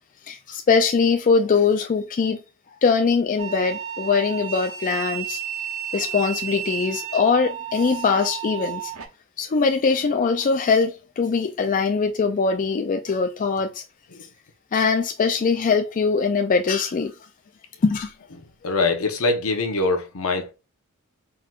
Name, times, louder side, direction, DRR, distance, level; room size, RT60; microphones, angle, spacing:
voice 1, 0.3-2.4 2.8-5.4 5.9-8.9 9.4-13.8 14.7-17.1 17.8-18.1, left 5 dB, 35° left, 0.4 m, -22 dB
sound 1, 3.4-9.1, right 10 dB, 65° right, 0.7 m, -32 dB
voice 2, 18.4-20.5, left 3 dB, 70° left, 0.9 m, -24 dB
4.4 x 3.9 x 2.4 m
head